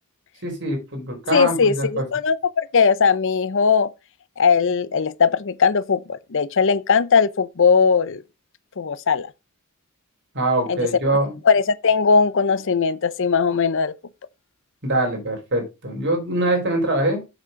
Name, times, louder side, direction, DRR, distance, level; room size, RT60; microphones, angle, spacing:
voice 1, 0.4-2.0 10.3-11.3 14.8-17.2, right 1 dB, 50° right, 4.0 m, -23 dB
voice 2, 1.3-3.9 4.4-8.2 8.8-9.3 10.7-10.9 11.5-13.9, left 5 dB, 60° left, 0.6 m, -19 dB
7.6 x 6.3 x 5.1 m
head